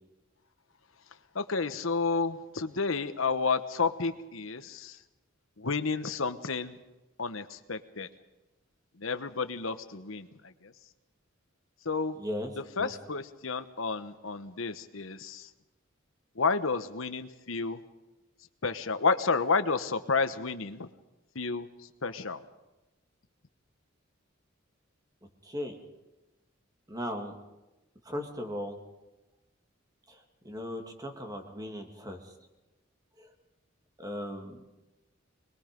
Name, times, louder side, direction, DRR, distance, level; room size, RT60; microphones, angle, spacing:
voice 1, 1.3-5.0 5.6-6.7 7.2-8.1 9.0-10.7 11.8-12.2 12.6-15.5 16.3-17.8 18.6-20.9 21.3-22.4, left 4 dB, 80° left, 10 dB, 1.2 m, -31 dB
voice 2, 12.2-12.5 12.8-12.9 25.4-25.8 26.9-27.4 28.0-28.8 30.1-30.2 30.4-32.3 33.2-33.3 34.0-34.6, equal, 20° right, 4 dB, 2.4 m, -37 dB
24.5 x 21.0 x 5.3 m, 1.0 s
head